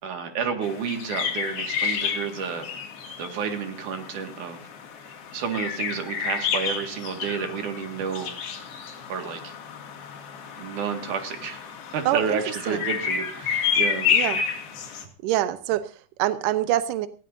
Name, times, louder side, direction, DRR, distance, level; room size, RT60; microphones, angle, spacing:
voice 1, 0.0-2.7 3.2-4.6 5.3-8.3 9.1-9.5 10.6-11.6 11.9-14.1, right 6 dB, 55° right, 5 dB, 3.1 m, -30 dB
sound 1, 0.6-15.0, left 7 dB, 70° left, 3.9 m, -30 dB
voice 2, 12.1-12.8 14.1-14.4 15.2-17.1, right 13 dB, 80° right, 11 dB, 1.9 m, -26 dB
19.0 x 16.5 x 2.7 m, 0.40 s
omnidirectional pair, 4.7 m